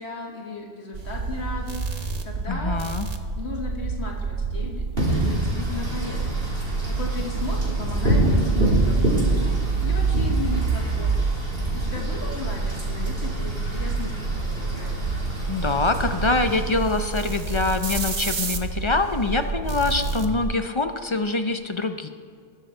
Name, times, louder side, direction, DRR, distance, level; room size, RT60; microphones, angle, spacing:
voice 1, 0.0-2.8 3.4-6.4 6.9-11.1 11.7-15.0, left 3 dB, 75° left, -1 dB, 1.9 m, -36 dB
sound 1, 0.9-20.5, right 4 dB, 40° right, 0.8 m, -28 dB
voice 2, 2.5-3.1 15.5-22.1, left 3 dB, 35° left, 8 dB, 0.5 m, -24 dB
Wind / Rain, 5.0-16.6, right 1 dB, 55° right, 3.3 m, -27 dB
20.0 x 6.9 x 4.4 m, 2.2 s
omnidirectional pair, 1.1 m